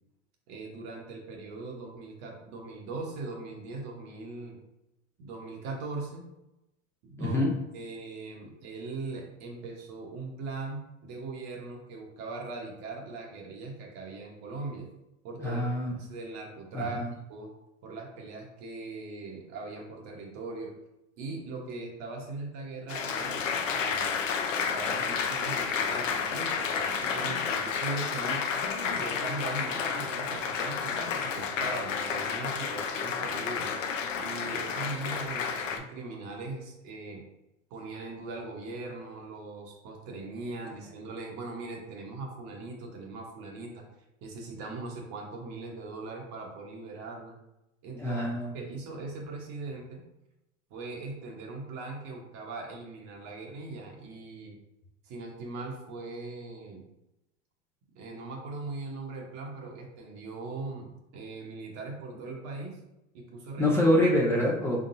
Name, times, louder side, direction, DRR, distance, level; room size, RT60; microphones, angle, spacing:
voice 1, 0.5-4.6 5.2-6.3 7.0-7.4 7.7-14.9 15.2-15.6 16.0-17.0 17.3-17.5 17.8-20.7 21.2-24.2 24.7-28.5 28.8-33.7 34.2-37.2 37.7-43.8 44.2-47.4 47.8-48.3 48.5-50.0 50.7-54.6 55.0-56.8 57.9-62.8 63.1-63.7, right 3 dB, 45° right, 0 dB, 1.2 m, -40 dB
voice 2, 7.2-7.5 15.4-15.9 16.7-17.0 48.0-48.5 63.6-64.9, left 1 dB, 5° left, -5 dB, 0.5 m, -25 dB
Applause, 22.9-35.8, left 6 dB, 85° left, 0.6 m, -31 dB
3.8 x 3.6 x 2.6 m, 0.90 s
hypercardioid pair, 110°, 38 cm